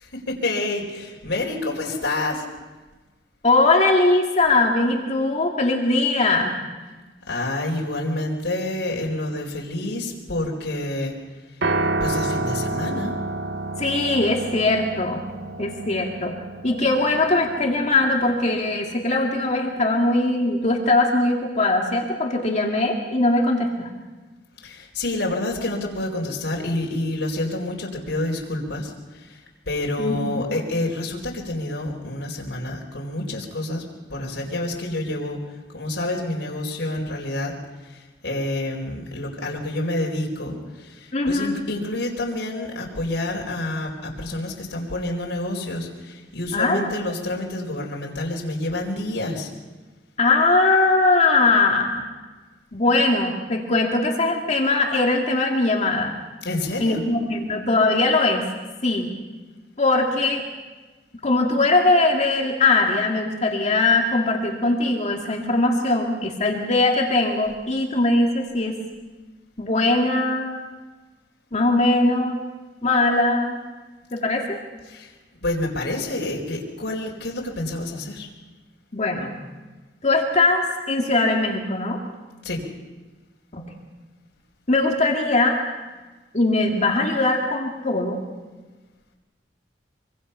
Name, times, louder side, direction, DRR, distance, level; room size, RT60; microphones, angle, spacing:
voice 1, 0.0-2.4 6.9-7.0 7.3-11.1 12.0-13.2 24.6-33.8 34.1-35.4 35.7-37.5 37.8-49.5 56.4-57.0 74.9-75.1 75.4-78.3 82.4-82.6, left 1 dB, 85° left, -1 dB, 4.3 m, -28 dB
voice 2, 3.4-6.6 13.8-15.2 15.6-16.3 16.6-23.9 30.0-30.4 41.1-41.6 46.5-46.9 50.2-52.1 52.7-56.1 56.8-58.4 58.8-59.1 59.8-60.4 61.2-68.8 69.6-70.6 71.5-72.4 72.8-73.6 74.1-74.6 78.9-79.3 80.0-82.0 83.5-83.7 84.7-85.6 86.3-88.2, left 2 dB, 40° left, 1 dB, 2.4 m, -21 dB
Piano, 11.6-19.9, right 2 dB, 75° right, 1.4 m, -30 dB
25.0 x 24.5 x 5.7 m, 1.2 s
head